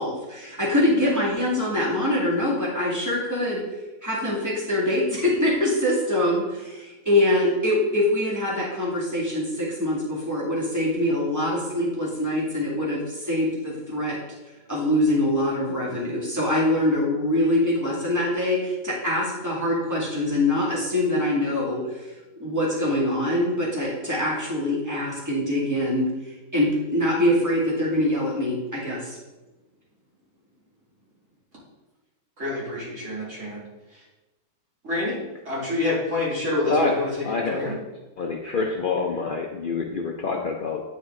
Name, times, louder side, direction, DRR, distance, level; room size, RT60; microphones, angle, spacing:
voice 1, 0.0-3.6 4.0-14.2 14.7-22.1 22.4-26.1 26.5-29.2, left 1 dB, 10° right, -5 dB, 2.0 m, -24 dB
voice 2, 32.4-33.6 34.8-35.2 35.4-37.1 37.5-37.7 38.4-38.6, left 2 dB, 50° right, -7 dB, 3.0 m, -27 dB
voice 3, 36.7-37.8 38.2-40.8, left 3 dB, 85° left, 2 dB, 0.4 m, -26 dB
9.0 x 5.1 x 3.7 m, 1.1 s
omnidirectional pair, 1.7 m